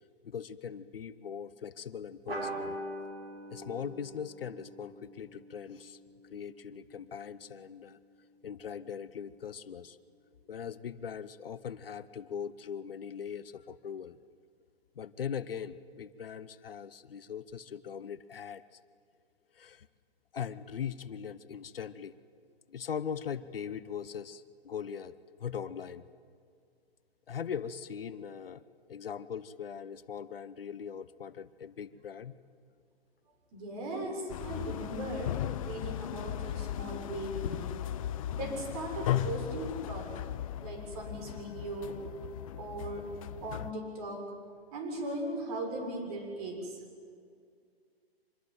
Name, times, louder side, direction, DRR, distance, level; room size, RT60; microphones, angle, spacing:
voice 1, 0.2-2.8 3.5-6.0 6.3-8.0 8.4-10.0 10.5-14.2 14.9-18.8 19.5-19.9 20.3-22.1 22.7-26.0 27.3-28.6 28.9-32.4 37.4-37.6, left 7 dB, 65° left, 15 dB, 1.0 m, -40 dB
sound 1, 2.3-7.2, right 1 dB, 70° right, 7.9 m, -43 dB
voice 2, 33.5-37.8 38.3-40.2 40.6-42.0 42.6-43.1 43.4-44.3 44.7-46.8, right 1 dB, 40° right, 3 dB, 6.7 m, -38 dB
sound 2, 34.3-43.7, left 12 dB, 35° left, 0.7 m, -37 dB
25.5 x 21.0 x 9.1 m, 2.2 s
figure-of-eight pair, 125°, 31 cm